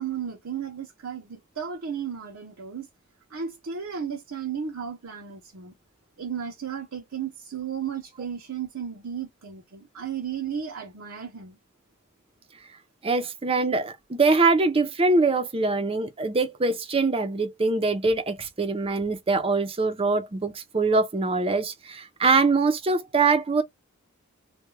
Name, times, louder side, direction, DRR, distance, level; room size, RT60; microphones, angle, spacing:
voice 1, 0.0-2.9 3.3-5.7 6.2-11.6, right 7 dB, 65° right, 0.6 m, -34 dB
voice 2, 13.0-23.6, right 3 dB, 25° right, 0.5 m, -23 dB
2.3 x 2.2 x 3.0 m
head